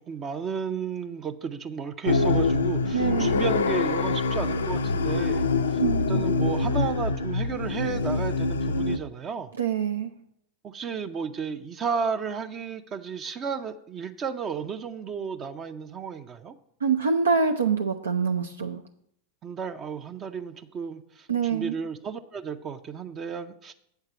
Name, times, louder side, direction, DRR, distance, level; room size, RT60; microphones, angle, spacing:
voice 1, 0.1-5.8 6.1-9.5 10.6-16.5 19.4-23.7, right 6 dB, 35° right, 8 dB, 0.5 m, -33 dB
sound 1, 2.1-9.0, left 3 dB, 80° left, 0.4 m, -25 dB
voice 2, 2.9-3.4 5.8-6.3 9.6-10.1 16.8-18.8 21.3-21.8, right 6 dB, 85° right, 5 dB, 0.5 m, -25 dB
7.9 x 4.6 x 6.7 m, 0.73 s
hypercardioid pair, 95°, 0 cm